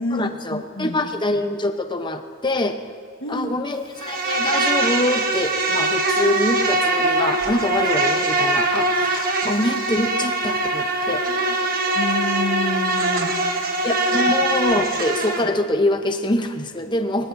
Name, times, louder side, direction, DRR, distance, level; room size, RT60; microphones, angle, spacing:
voice 1, 0.1-2.8 3.3-11.2 13.8-17.3, left 1 dB, 20° left, 7 dB, 0.8 m, -24 dB
voice 2, 3.2-3.5 11.9-13.4 13.6-13.7, left 1 dB, 65° left, 1 dB, 1.6 m, -27 dB
Insect, 4.0-15.4, right 2 dB, 45° right, 1.2 m, -22 dB
21.0 x 19.5 x 2.7 m, 2.2 s
head